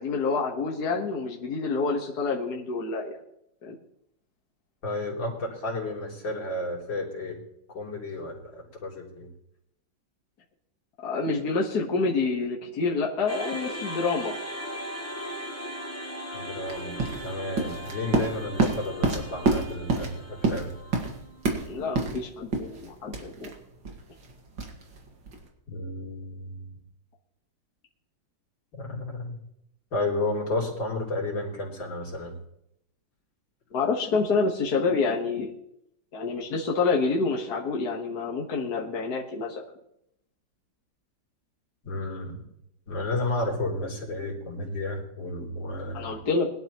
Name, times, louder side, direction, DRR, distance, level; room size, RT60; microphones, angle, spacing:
voice 1, 0.0-3.2 3.6-3.7 11.0-14.4 21.7-23.5 33.7-35.5 36.1-39.6 45.9-46.5, left 4 dB, 60° left, -1 dB, 1.9 m, -27 dB
voice 2, 4.8-7.4 7.7-9.3 16.3-20.7 25.7-26.7 28.7-29.4 29.9-32.4 41.8-42.4 42.9-46.2, left 2 dB, 85° left, -2 dB, 3.9 m, -32 dB
sound 1, 13.3-21.5, equal, 10° left, 0.9 m, -38 dB
sound 2, 16.7-25.5, right 3 dB, 85° right, 2.7 m, -29 dB
22.0 x 11.5 x 3.1 m, 0.78 s
omnidirectional pair, 2.0 m